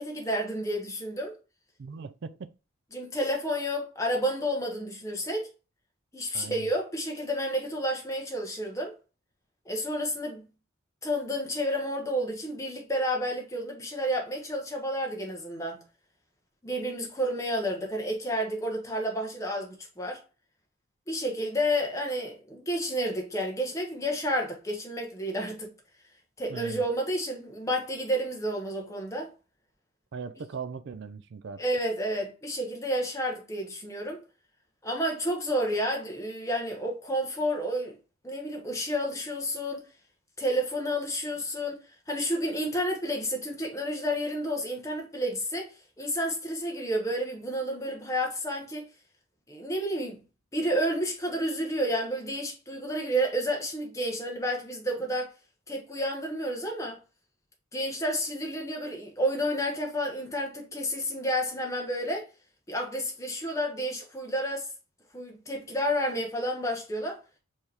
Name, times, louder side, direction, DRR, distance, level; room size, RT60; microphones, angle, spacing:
voice 1, 0.0-1.4 2.9-5.5 6.1-8.9 9.6-10.4 11.0-15.8 16.6-20.2 21.1-25.7 26.4-29.3 31.6-34.2 34.8-38.0 38.2-39.8 40.4-41.8 42.1-48.9 49.5-50.2 50.5-55.3 55.7-57.0 57.7-62.2 62.7-64.7 65.1-67.2, equal, 15° left, 1.0 m, -30 dB
voice 2, 1.8-2.5 6.3-6.7 26.5-26.8 30.1-31.6, right 5 dB, 55° right, 0.4 m, -39 dB
4.5 x 3.0 x 3.3 m
head